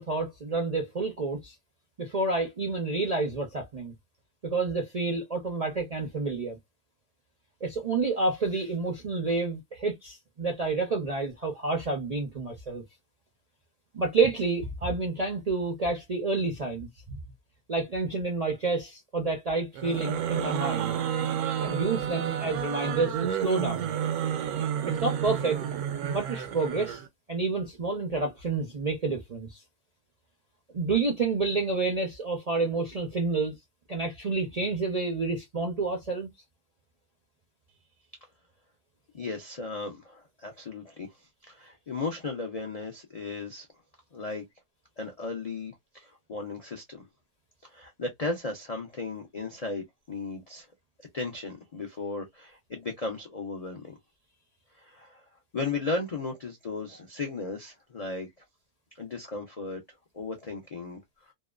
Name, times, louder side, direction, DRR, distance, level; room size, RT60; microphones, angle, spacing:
voice 1, 0.0-1.5 2.0-3.9 4.4-6.6 7.6-12.8 13.9-17.2 17.7-20.9 21.6-23.9 24.8-25.6 26.0-27.0 27.3-29.6 30.7-33.5 33.9-36.3, right 3 dB, 55° right, 0.4 m, -29 dB
sound 1, 19.7-27.1, right 9 dB, 85° right, 1.1 m, -30 dB
voice 2, 39.1-43.7 44.1-44.4 45.0-47.1 47.6-50.7 51.1-54.0 54.7-55.3 55.5-58.3 59.0-59.8 60.1-61.0, left 3 dB, 80° left, 0.3 m, -36 dB
2.8 x 2.1 x 2.3 m
omnidirectional pair, 1.6 m